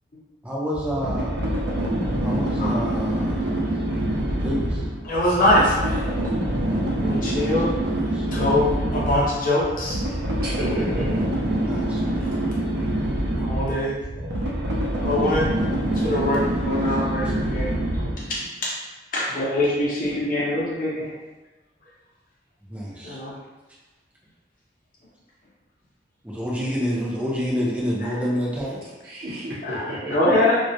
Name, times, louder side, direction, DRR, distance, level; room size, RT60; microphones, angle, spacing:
voice 1, 0.4-1.3 2.2-3.6 4.3-4.8 7.8-8.2 11.6-12.0 22.7-23.2 26.2-28.8, equal, 10° right, -6 dB, 0.5 m, -28 dB
sound 1, 0.7-18.4, right 1 dB, 85° right, 0.5 m, -25 dB
voice 2, 5.0-6.1 7.0-7.7 8.3-10.0 13.4-14.0 15.0-15.5 15.9-18.7 19.1-21.1 23.0-23.3 28.0-28.2 29.6-30.7, left 1 dB, 50° left, -6 dB, 0.7 m, -23 dB
voice 3, 10.4-11.1 29.0-30.3, right 1 dB, 60° right, -7 dB, 0.8 m, -31 dB
2.3 x 2.0 x 2.7 m, 1.1 s
head